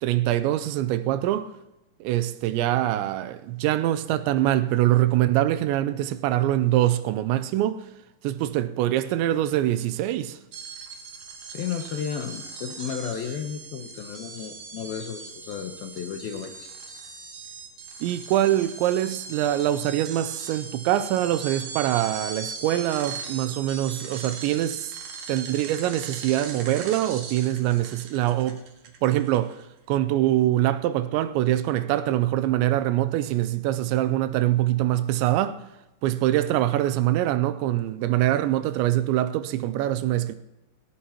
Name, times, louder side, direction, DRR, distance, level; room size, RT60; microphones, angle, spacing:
voice 1, 0.0-1.5 2.0-7.9 8.2-10.4 18.0-24.9 25.3-28.6 29.0-35.6 36.0-40.4, right 13 dB, 85° right, 2.8 m, -24 dB
sound 1, 10.5-29.7, right 5 dB, 60° right, 2.7 m, -39 dB
voice 2, 11.5-16.7, left 8 dB, 75° left, 2.3 m, -33 dB
18.5 x 17.5 x 2.9 m
omnidirectional pair, 5.3 m